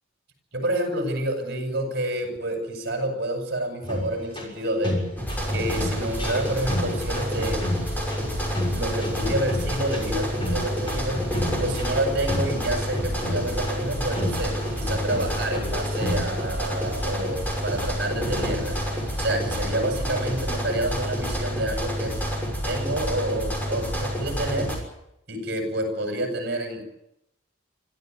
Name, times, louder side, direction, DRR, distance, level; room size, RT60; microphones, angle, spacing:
voice 1, 0.5-5.0 5.5-7.8 8.7-11.2 11.6-18.8 19.2-22.1 22.6-24.7 25.3-26.8, right 1 dB, 50° right, 4 dB, 7.8 m, -28 dB
sound 1, 3.8-16.4, left 1 dB, 25° left, 6.5 m, -32 dB
sound 2, 5.2-24.8, equal, 10° left, 6.1 m, -29 dB
sound 3, 5.3-21.5, equal, 10° right, 4.1 m, -43 dB
25.5 x 15.5 x 9.6 m, 0.83 s
head